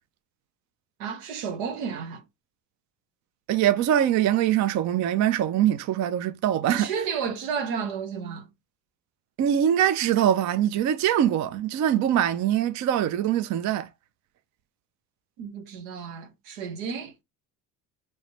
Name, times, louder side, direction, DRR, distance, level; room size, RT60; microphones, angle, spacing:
voice 1, 1.0-2.2 6.7-8.4 15.4-17.1, right 6 dB, 80° right, 1.1 m, -32 dB
voice 2, 3.5-6.9 9.4-13.9, right 11 dB, 40° right, 0.4 m, -23 dB
3.1 x 3.1 x 2.8 m
hypercardioid pair, 70°, 50 cm